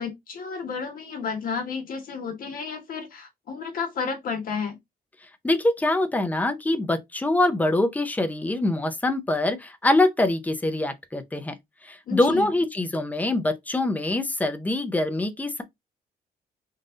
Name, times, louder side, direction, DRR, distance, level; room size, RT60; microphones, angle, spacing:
voice 1, 0.0-4.8 12.1-12.5, left 5 dB, 60° left, 1.5 m, -32 dB
voice 2, 5.4-11.5 11.8-15.6, left 2 dB, 10° left, 0.5 m, -24 dB
3.9 x 2.6 x 3.7 m
wide cardioid pair, 160°, 16 cm